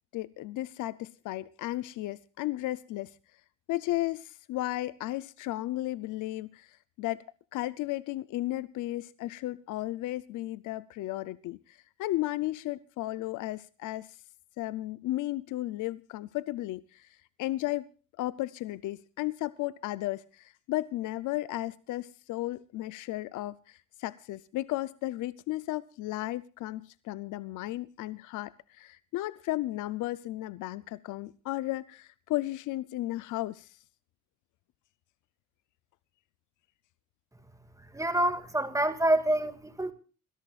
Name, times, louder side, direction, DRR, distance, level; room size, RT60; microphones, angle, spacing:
voice 1, 0.1-3.1 3.7-7.2 7.5-14.2 14.6-17.9 18.2-33.8, left 16 dB, 90° left, 0.6 m, -34 dB
voice 2, 37.9-39.9, right 1 dB, 10° right, 2.0 m, -27 dB
28.0 x 13.5 x 2.4 m
cardioid pair, 90°, 30 cm